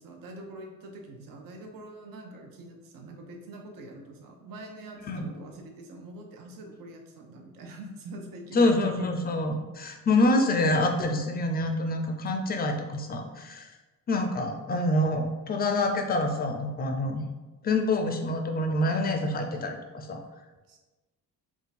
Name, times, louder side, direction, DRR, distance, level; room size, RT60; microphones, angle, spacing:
voice 1, 0.0-9.1 20.7-20.8, right 1 dB, 80° right, 2 dB, 0.8 m, -44 dB
voice 2, 8.5-13.7 14.1-17.2 17.6-20.2, left 2 dB, 30° left, 5 dB, 0.4 m, -26 dB
3.7 x 2.4 x 4.0 m, 1.2 s
cardioid pair, 145°, 33 cm